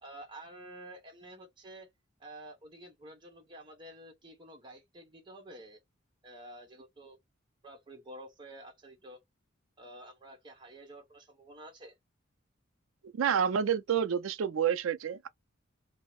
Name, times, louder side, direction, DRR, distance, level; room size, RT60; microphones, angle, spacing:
voice 1, 0.0-1.9 2.2-5.8 6.2-7.2 7.6-9.2 9.8-12.0, right 1 dB, 25° right, 0.9 m, -50 dB
voice 2, 13.1-15.3, right 8 dB, 80° right, 0.4 m, -29 dB
2.7 x 2.0 x 3.0 m
head